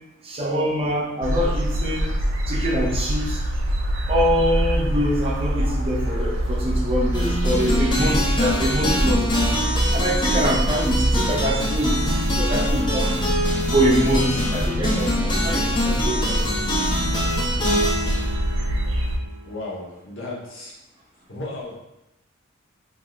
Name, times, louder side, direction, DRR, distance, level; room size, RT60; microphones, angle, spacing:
voice 1, 0.2-2.1 2.5-3.4 4.1-9.5 9.9-13.2 13.7-16.4, equal, 30° right, -3 dB, 0.6 m, -24 dB
sound 1, 1.2-19.2, equal, 65° right, 0.5 m, -25 dB
sound 2, 7.1-19.4, left 1 dB, 25° left, 0.6 m, -25 dB
voice 2, 19.4-20.8 21.3-21.8, left 2 dB, 65° left, -5 dB, 1.0 m, -34 dB
3.6 x 2.5 x 2.4 m, 0.93 s
head